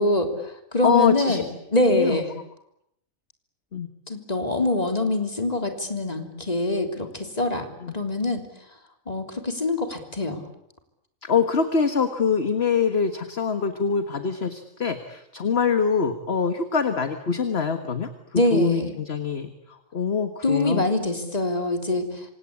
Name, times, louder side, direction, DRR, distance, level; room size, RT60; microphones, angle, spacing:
voice 1, 0.0-1.4 1.7-2.3 4.1-7.7 7.9-8.4 9.1-10.4 18.4-19.0 20.4-22.3, left 2 dB, 30° left, 5 dB, 3.6 m, -24 dB
voice 2, 0.8-1.4 1.9-2.2 3.7-3.9 7.8-7.9 11.2-20.9, left 5 dB, 50° left, 8 dB, 1.8 m, -24 dB
26.5 x 26.5 x 8.5 m, 0.76 s
omnidirectional pair, 1.4 m